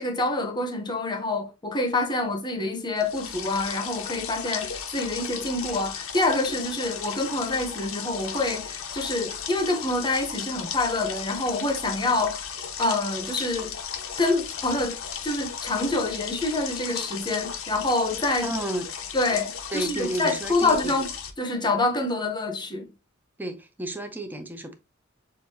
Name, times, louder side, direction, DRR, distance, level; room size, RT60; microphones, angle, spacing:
voice 1, 0.0-12.4 12.8-13.8 14.2-18.5 19.1-21.1 21.4-22.9, left 2 dB, 20° left, 0.9 m, -26 dB
sound 1, 3.0-21.3, left 7 dB, 90° left, 0.8 m, -35 dB
voice 2, 18.4-18.9 19.7-21.0 23.4-24.7, right 1 dB, 10° right, 0.6 m, -32 dB
6.5 x 2.6 x 2.7 m
head